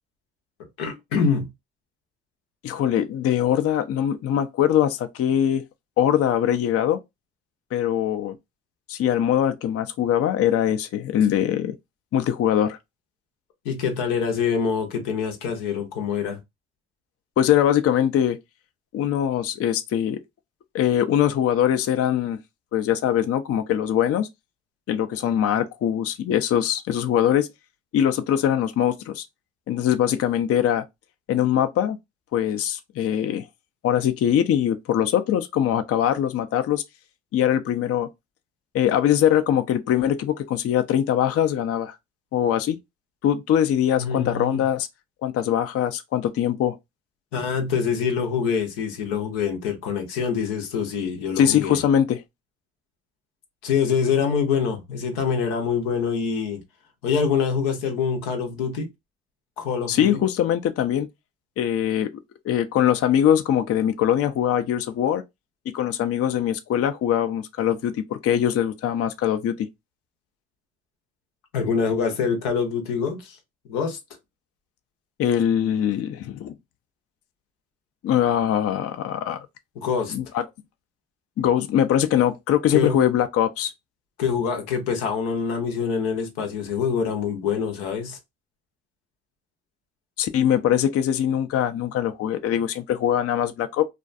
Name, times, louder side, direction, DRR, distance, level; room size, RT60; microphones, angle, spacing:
voice 1, 0.8-1.5 13.6-16.4 44.0-44.6 47.3-51.8 53.6-56.6 57.0-58.9 59.6-60.2 71.5-73.4 73.7-74.0 79.8-80.2 82.7-83.0 84.2-88.2, left 6 dB, 90° left, 0.7 m, -25 dB
voice 2, 2.6-5.6 6.0-7.0 7.7-8.3 8.9-11.7 12.1-12.8 17.4-18.4 18.9-20.2 20.7-22.4 22.7-24.3 24.9-27.5 27.9-29.2 29.7-30.8 31.3-32.0 32.3-33.5 33.8-36.8 37.3-38.1 38.7-41.9 42.3-42.8 43.2-44.9 45.2-46.8 51.4-52.2 59.9-61.1 61.6-62.1 62.4-65.2 65.7-69.7 75.2-76.5 78.0-79.4 80.1-80.4 81.4-83.7 90.2-93.9, left 10 dB, 50° left, 0.4 m, -22 dB
2.4 x 2.2 x 2.4 m
supercardioid pair, 50°, 31 cm